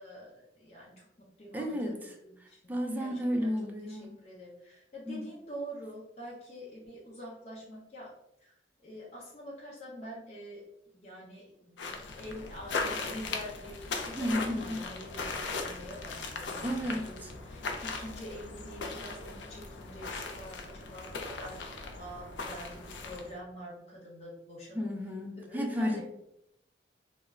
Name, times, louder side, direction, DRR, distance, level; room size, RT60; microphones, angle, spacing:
voice 1, 0.0-3.5 3.8-8.1 8.4-8.5 8.8-10.6 10.9-24.9 25.3-26.0, equal, 35° left, -6 dB, 0.6 m, -46 dB
voice 2, 1.5-2.1 2.4-4.2 5.1-5.3 14.2-14.9 16.6-17.3 24.7-26.0, equal, 10° right, 1 dB, 0.3 m, -33 dB
sound 1, 11.8-23.4, left 3 dB, 80° left, 0.4 m, -38 dB
2.1 x 2.0 x 3.5 m, 0.79 s
head